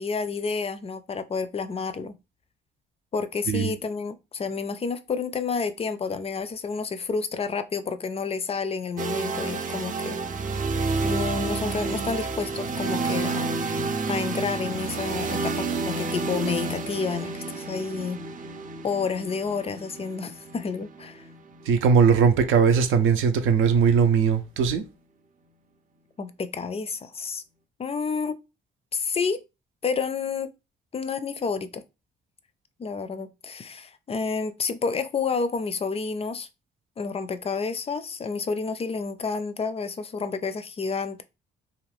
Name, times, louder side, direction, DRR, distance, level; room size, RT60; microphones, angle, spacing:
voice 1, 0.0-2.2 3.1-10.2 11.0-18.2 18.8-21.3 26.2-27.4 27.8-28.4 28.9-29.4 29.8-30.5 30.9-31.8 32.8-36.5 37.0-41.2, left 5 dB, 30° left, 0.4 m, -30 dB
sound 1, 9.0-22.8, right 4 dB, 40° right, 0.6 m, -30 dB
voice 2, 21.7-24.8, right 6 dB, 85° right, 0.6 m, -20 dB
2.5 x 2.4 x 3.3 m
cardioid pair, 90°, 20 cm